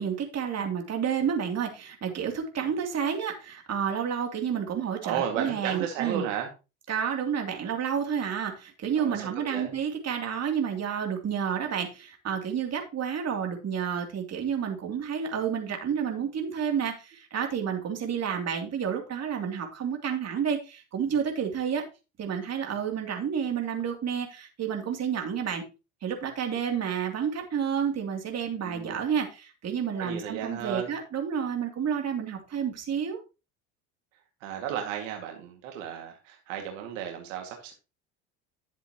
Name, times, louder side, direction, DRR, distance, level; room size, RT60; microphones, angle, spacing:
voice 1, 0.0-6.2 6.9-21.8 22.2-25.6 26.0-33.2, right 7 dB, 40° right, 3 dB, 3.0 m, -30 dB
voice 2, 5.0-6.5 9.0-9.7 28.6-29.0 30.0-30.9 34.4-37.7, right 8 dB, 75° right, 3 dB, 2.1 m, -34 dB
11.5 x 7.5 x 3.0 m, 0.28 s
hypercardioid pair, 75°, 39 cm